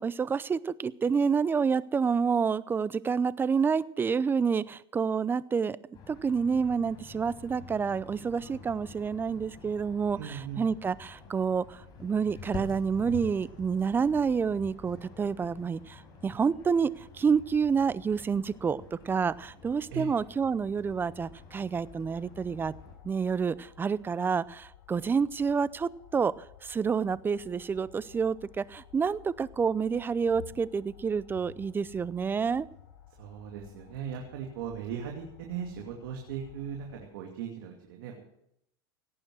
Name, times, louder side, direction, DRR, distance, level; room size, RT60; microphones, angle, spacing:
voice 1, 0.0-5.8 6.1-22.7 23.0-32.7, right 6 dB, 20° right, 19 dB, 0.5 m, -28 dB
sound 1, 5.9-23.0, left 5 dB, 35° left, 4.8 m, -48 dB
voice 2, 10.2-10.7 19.9-20.1 33.2-38.2, right 7 dB, 75° right, 1 dB, 2.5 m, -38 dB
sound 2, 17.6-37.0, left 10 dB, 65° left, 4.8 m, -55 dB
17.5 x 9.1 x 6.3 m, 0.74 s
supercardioid pair, 115°, 12 cm